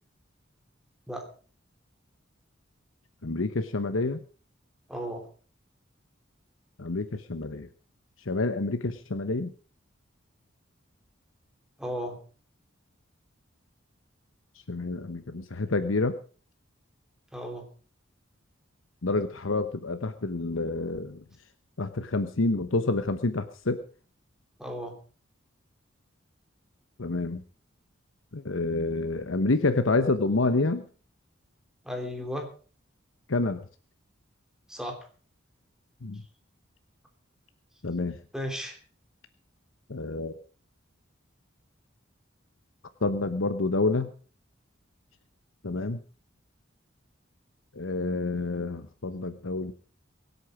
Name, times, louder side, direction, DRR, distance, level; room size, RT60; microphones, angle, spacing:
voice 1, 3.2-4.2 6.8-7.7 8.2-9.5 14.7-16.2 19.0-21.2 21.8-23.8 27.0-27.4 28.3-30.9 33.3-33.6 36.0-36.2 37.8-38.2 39.9-40.3 43.0-44.1 45.6-46.0 47.7-49.7, left 3 dB, 80° left, 10 dB, 1.0 m, -28 dB
voice 2, 4.9-5.3 11.8-12.2 17.3-17.7 24.6-25.0 31.8-32.5 34.7-35.1 38.3-38.8, equal, 5° right, 3 dB, 3.2 m, -35 dB
23.5 x 8.4 x 4.9 m, 0.39 s
head